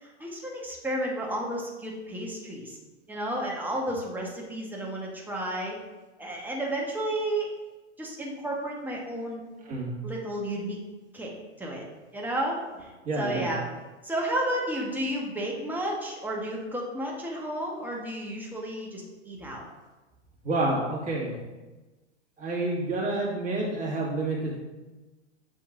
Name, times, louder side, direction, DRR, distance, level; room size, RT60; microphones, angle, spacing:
voice 1, 0.0-2.8 3.1-5.8 6.2-7.6 8.0-9.4 10.0-10.8 11.1-11.3 11.6-11.8 12.1-13.6 14.0-19.6, right 1 dB, 5° right, -2 dB, 1.2 m, -32 dB
voice 2, 13.1-13.5 20.4-21.4 22.4-24.6, right 2 dB, 20° right, -4 dB, 1.9 m, -28 dB
7.7 x 5.4 x 2.6 m, 1.2 s
hypercardioid pair, 115°, 36 cm